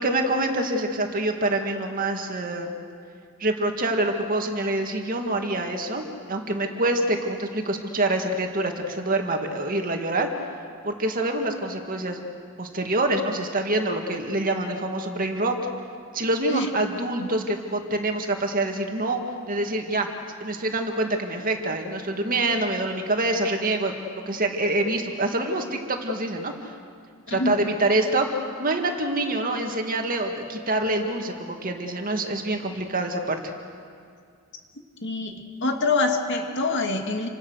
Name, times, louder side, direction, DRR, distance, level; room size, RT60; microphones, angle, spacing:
voice 1, 0.0-2.7 3.4-10.3 10.8-12.2 12.6-15.5 16.1-19.2 19.5-20.1 20.4-23.9 24.3-26.7 27.3-33.4, right 2 dB, 40° right, 3 dB, 2.3 m, -26 dB
voice 2, 35.0-35.3 35.6-37.3, left 3 dB, 55° left, 4 dB, 2.5 m, -25 dB
29.5 x 25.5 x 6.6 m, 2.2 s
head